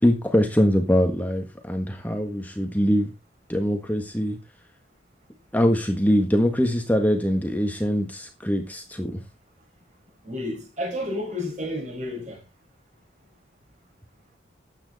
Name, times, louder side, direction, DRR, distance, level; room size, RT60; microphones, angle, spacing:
voice 1, 0.0-3.1 3.5-4.4 5.5-9.2, equal, 10° left, 1.6 m, -23 dB
voice 2, 10.2-12.4, left 1 dB, 40° right, 5.8 m, -31 dB
13.0 x 9.2 x 4.1 m
head